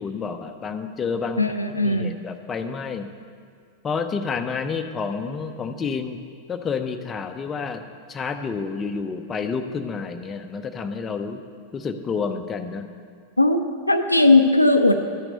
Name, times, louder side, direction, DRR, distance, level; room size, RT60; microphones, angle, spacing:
voice 1, 0.0-1.5 1.8-3.1 3.8-6.2 6.5-7.8 8.1-11.4 11.7-12.9, left 5 dB, 20° left, 7 dB, 0.7 m, -29 dB
voice 2, 1.4-2.2 13.4-13.6 13.9-14.9, left 2 dB, 85° left, 7 dB, 0.5 m, -17 dB
12.5 x 6.0 x 6.7 m, 2.1 s
figure-of-eight pair, 90°, 0 cm